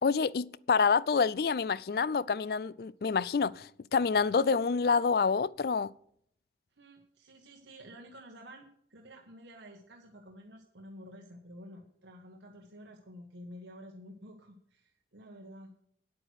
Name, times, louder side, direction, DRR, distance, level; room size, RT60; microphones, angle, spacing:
voice 1, 0.0-5.9, left 5 dB, 55° left, 0.4 m, -27 dB
voice 2, 6.8-15.7, equal, 85° right, 1.3 m, -50 dB
9.9 x 8.6 x 6.4 m
head